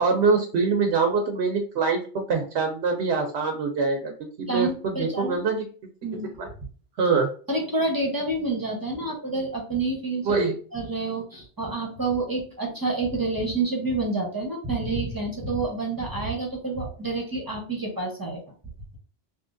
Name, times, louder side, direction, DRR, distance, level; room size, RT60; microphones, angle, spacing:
voice 1, 0.0-2.0 2.3-4.1 4.4-5.6 6.4-6.5 7.0-7.3 10.2-10.5, right 4 dB, 90° right, 3 dB, 0.9 m, -24 dB
voice 2, 4.5-5.4 6.0-6.3 7.5-10.3 10.7-18.4, right 3 dB, 20° right, -1 dB, 0.8 m, -28 dB
3.5 x 2.8 x 2.5 m, 0.40 s
omnidirectional pair, 1.1 m